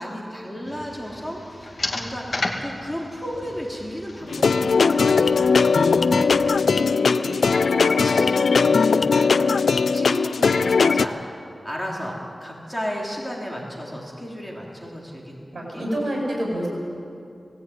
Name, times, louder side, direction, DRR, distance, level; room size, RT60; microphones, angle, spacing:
voice 1, 0.0-11.2 11.6-15.9 16.5-16.6, equal, 10° left, -3 dB, 3.5 m, -34 dB
sound 1, 0.7-6.4, left 2 dB, 50° left, 2.3 m, -34 dB
sound 2, 4.3-11.1, left 5 dB, 80° left, 0.5 m, -19 dB
voice 2, 15.5-16.7, equal, 60° right, -2 dB, 7.9 m, -27 dB
19.5 x 17.0 x 9.5 m, 2.5 s
wide cardioid pair, 100°, 0 cm